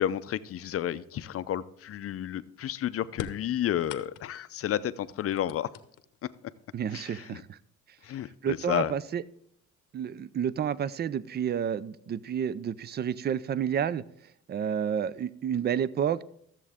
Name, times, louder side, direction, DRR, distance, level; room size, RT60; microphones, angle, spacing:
voice 1, 0.0-5.7 6.4-6.5 6.9-7.4 8.0-8.9, left 11 dB, 50° left, 0.5 m, -31 dB
sound 1, 3.1-4.5 5.1-6.3 7.3-7.4 8.4-8.5 9.0-9.5, left 11 dB, 80° left, 0.8 m, -42 dB
voice 2, 6.7-7.6 8.4-9.2 9.9-14.0 14.5-16.2, right 8 dB, 35° right, 0.4 m, -30 dB
13.0 x 7.4 x 3.5 m
cardioid pair, 105°, 31 cm